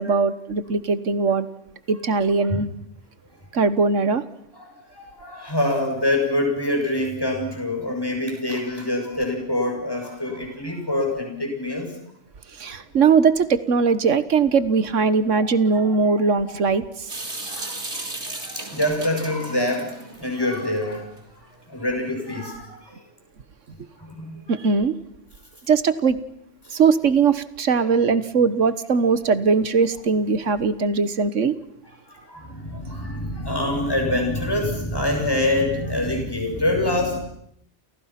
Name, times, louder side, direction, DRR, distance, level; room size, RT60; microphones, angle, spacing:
voice 1, 0.0-1.5 1.9-2.7 3.5-4.2 12.6-17.1 24.5-24.9 25.7-26.2 26.7-31.5, right 5 dB, 85° right, 14 dB, 1.7 m, -20 dB
voice 2, 4.5-11.9 15.3-16.3 17.4-21.1 21.7-23.0 24.0-24.4 26.6-26.8 27.7-27.9 30.5-30.6 31.8-37.2, left 1 dB, 20° left, 2 dB, 7.3 m, -26 dB
Water tap faucet / Sink (filling or washing) / Drip, 17.1-21.2, right 2 dB, 65° right, 3.7 m, -35 dB
29.5 x 28.5 x 6.0 m, 0.73 s
omnidirectional pair, 1.2 m